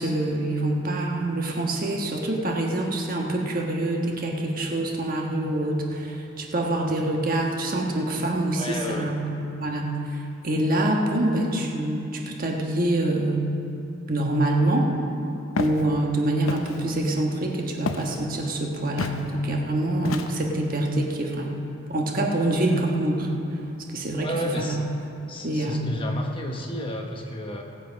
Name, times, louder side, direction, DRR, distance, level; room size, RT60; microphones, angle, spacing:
voice 1, 0.0-9.2 9.6-9.9 10.4-13.5 14.1-14.9 15.6-21.5 21.9-23.3 23.9-24.3 24.6-24.8 25.4-25.9, right 1 dB, 45° right, 0 dB, 1.3 m, -25 dB
voice 2, 8.5-9.1 24.2-24.8 25.3-27.6, left 1 dB, 25° left, 1 dB, 0.9 m, -31 dB
Walk footsteps, 15.6-15.8 16.5-16.8 17.9-18.2 19.0-19.2 20.0-20.6, left 3 dB, 85° left, 0.8 m, -30 dB
18.5 x 7.5 x 5.2 m, 2.8 s
head